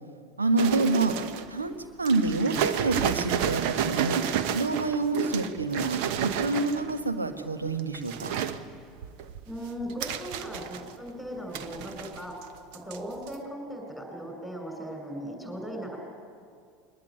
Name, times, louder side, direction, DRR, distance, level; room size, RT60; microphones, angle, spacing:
voice 1, 0.4-1.2 1.5-4.2 4.5-8.3, right 3 dB, 80° right, 8 dB, 1.4 m, -27 dB
sound 1, 0.6-1.6 2.1-7.0 7.7-8.6 9.0-11.1 11.5-12.5 12.7-13.0 13.3-13.4, right 9 dB, 55° right, 1.1 m, -31 dB
voice 2, 9.5-12.3 12.9-16.0, equal, ahead, 3 dB, 7.3 m, -38 dB
22.0 x 19.5 x 9.9 m, 2.2 s
figure-of-eight pair, 75°, 0 cm